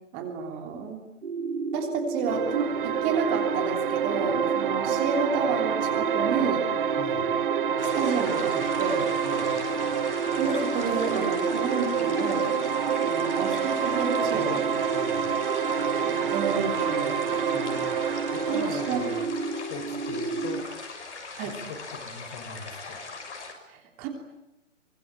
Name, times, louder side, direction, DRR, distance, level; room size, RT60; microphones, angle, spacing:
voice 1, 0.1-1.0 1.7-6.6 7.9-9.1 10.4-12.4 13.0-14.6 16.0-17.2 18.5-19.0 21.4-21.6 23.7-24.1, right 5 dB, 20° right, 4 dB, 3.3 m, -30 dB
sound 1, 1.2-20.6, right 3 dB, 60° right, 3.8 m, -32 dB
sound 2, 2.3-19.2, right 8 dB, 40° right, 1.2 m, -28 dB
voice 2, 7.0-7.3 9.2-9.6 14.3-15.3 16.2-16.3 17.5-18.0 18.3-19.2 19.7-20.7 21.4-23.1, left 4 dB, 30° left, 7 dB, 4.3 m, -41 dB
sound 3, 7.8-23.5, left 4 dB, 65° left, 6.5 m, -40 dB
24.5 x 21.0 x 9.9 m, 0.92 s
figure-of-eight pair, 135°, 38 cm